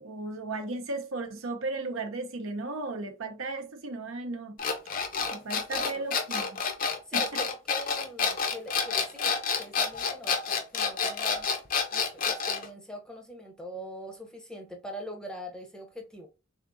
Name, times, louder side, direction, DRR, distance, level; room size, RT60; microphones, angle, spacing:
voice 1, 0.0-4.6 5.3-6.5 7.1-7.2, right 2 dB, 75° right, 0.7 m, -35 dB
sound 1, 4.6-12.7, left 5 dB, 40° left, 0.6 m, -28 dB
voice 2, 5.7-6.1 7.1-11.5 11.9-16.3, equal, 5° left, 0.7 m, -42 dB
3.6 x 3.5 x 2.5 m
head